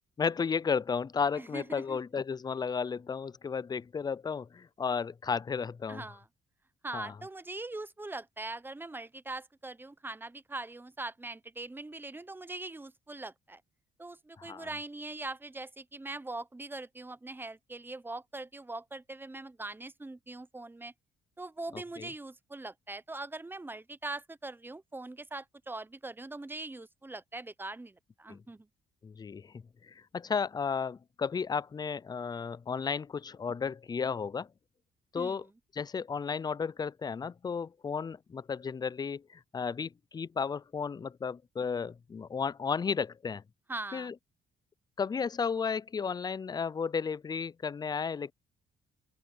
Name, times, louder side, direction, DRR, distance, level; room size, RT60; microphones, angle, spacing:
voice 1, 0.2-6.0 6.9-7.1 14.4-14.7 21.7-22.1 28.3-28.4 29.0-29.5 29.9-34.5 35.1-35.5 35.7-43.4 43.9-44.1 45.0-48.3, left 6 dB, 20° left, 0.3 m, -33 dB
voice 2, 1.4-2.0 5.9-6.3 6.8-13.6 14.0-20.9 21.4-28.7 35.1-35.5 43.7-44.1, right 2 dB, 10° right, 0.7 m, -42 dB
open air
cardioid pair, 90°, 20 cm